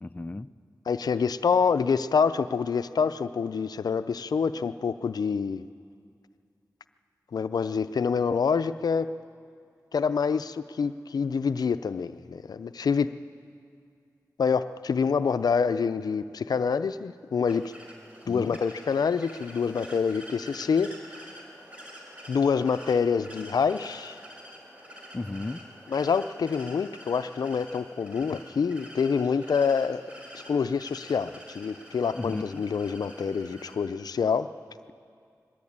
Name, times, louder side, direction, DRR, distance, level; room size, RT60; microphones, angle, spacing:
voice 1, 0.0-0.5 18.3-18.6 25.1-25.6 32.1-32.6, left 2 dB, 25° left, 11 dB, 0.6 m, -34 dB
voice 2, 0.9-5.6 7.3-9.1 9.9-13.1 14.4-17.7 18.3-20.9 22.3-24.2 25.9-30.0 30.3-34.5, left 6 dB, 75° left, 12 dB, 0.5 m, -26 dB
sound 1, 17.5-33.8, equal, 20° right, 4.3 m, -47 dB
21.5 x 15.0 x 8.7 m, 2.3 s
cardioid pair, 50°, 7 cm